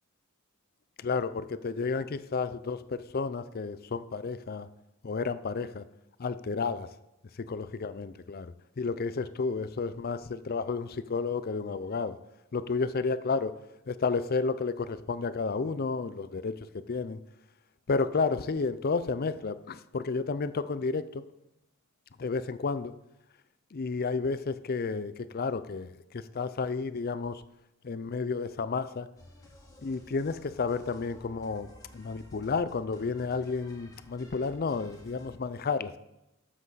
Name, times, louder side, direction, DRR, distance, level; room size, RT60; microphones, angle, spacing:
voice 1, 1.0-4.7 5.0-5.8 6.2-6.9 7.4-12.2 12.5-13.5 13.9-17.2 17.9-21.2 22.2-22.9 23.7-27.4 27.8-29.1 29.8-36.0, left 4 dB, 45° left, 0.5 m, -31 dB
sound 1, 29.2-35.3, left 1 dB, 15° left, 1.9 m, -54 dB
12.0 x 7.4 x 4.1 m
head